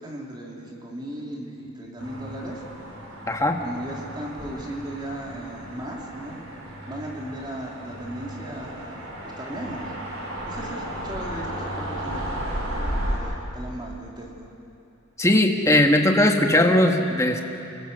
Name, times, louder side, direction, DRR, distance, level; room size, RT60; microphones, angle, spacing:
voice 1, 0.0-2.6 3.6-6.4 6.9-9.1 9.4-9.9 10.4-14.5, right 1 dB, 20° right, -2 dB, 3.1 m, -36 dB
sound 1, 2.0-13.2, equal, 85° right, 5.1 m, -34 dB
voice 2, 3.3-3.6 15.2-17.4, left 1 dB, 15° left, 3 dB, 1.6 m, -19 dB
29.0 x 21.0 x 6.8 m, 2.8 s
head